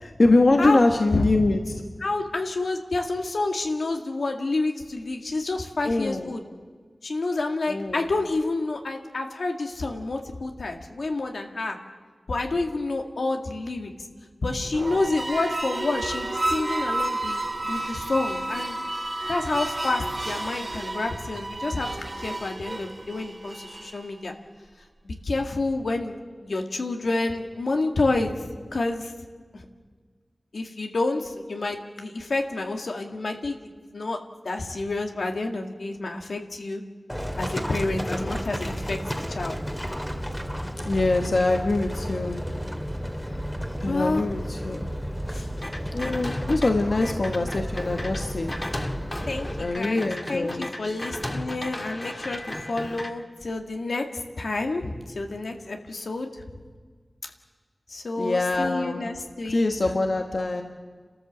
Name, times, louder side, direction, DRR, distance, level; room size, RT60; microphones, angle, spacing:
voice 1, 0.0-1.8 5.8-6.3 7.7-8.0 40.8-42.4 43.8-44.8 45.9-48.5 49.6-50.7 58.2-59.1 59.5-60.6, left 2 dB, 65° left, 4 dB, 1.4 m, -23 dB
voice 2, 2.0-6.4 7.0-11.8 12.3-13.9 14.4-18.8 19.3-24.3 25.0-26.1 26.4-29.1 29.5-29.6 30.5-33.6 33.9-34.2 34.4-36.8 37.4-39.6 43.9-44.2 45.3-45.5 46.9-47.0 49.3-52.4 52.7-56.3 57.9-59.7, left 2 dB, 85° left, 3 dB, 2.0 m, -29 dB
sound 1, 14.6-24.0, right 2 dB, 50° right, 2.6 m, -31 dB
Livestock farm animals working animals, 37.1-49.6, equal, 5° left, 2.0 m, -32 dB
sound 2, 45.6-46.7 47.0-53.1, left 1 dB, 30° left, 1.9 m, -35 dB
30.0 x 13.5 x 7.6 m, 1.5 s
wide cardioid pair, 65°, 0 cm